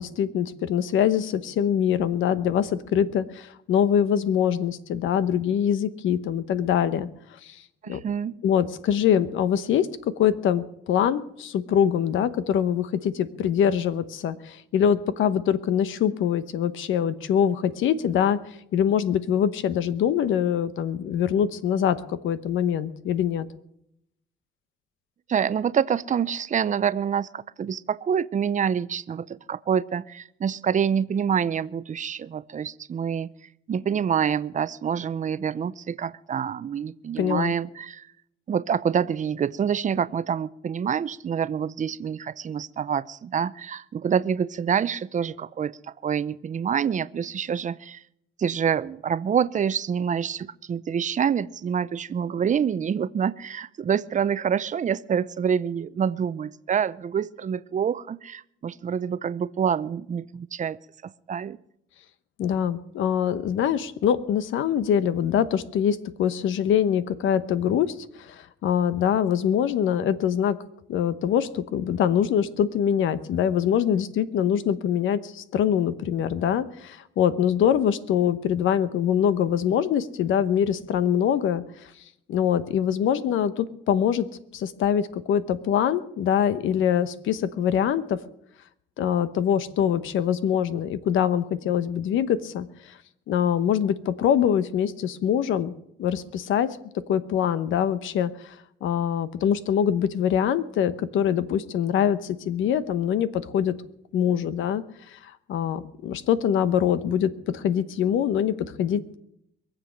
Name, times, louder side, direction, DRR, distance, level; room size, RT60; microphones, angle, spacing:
voice 1, 0.0-7.1 7.4-8.0 8.4-9.9 10.2-23.5 37.2-37.5 62.4-70.6 70.9-81.9 82.3-84.3 84.5-88.2 89.0-93.0 93.3-95.7 96.0-96.8 97.1-98.6 98.8-103.7 104.1-109.2, left 9 dB, 80° left, 14 dB, 1.0 m, -24 dB
voice 2, 7.8-8.4 25.3-33.3 33.7-38.1 38.5-48.0 48.4-61.6, right 7 dB, 40° right, 17 dB, 0.6 m, -27 dB
23.0 x 7.6 x 6.4 m, 0.76 s
cardioid pair, 90°, 20 cm